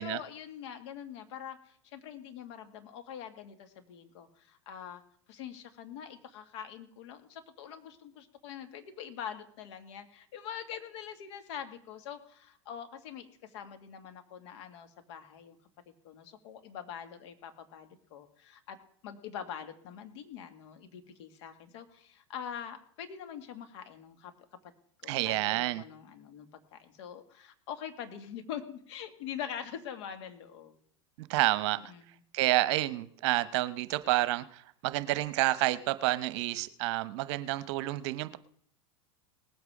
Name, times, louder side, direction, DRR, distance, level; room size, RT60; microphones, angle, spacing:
voice 1, 0.0-5.0 5.3-15.6 15.9-18.8 19.0-24.3 25.0-30.8 31.8-32.1, left 8 dB, 60° left, 8 dB, 2.1 m, -44 dB
voice 2, 25.1-25.8 31.2-31.8 32.3-38.4, right 17 dB, 60° right, 15 dB, 0.9 m, -29 dB
19.5 x 8.0 x 5.0 m, 0.62 s
hypercardioid pair, 110°, 16 cm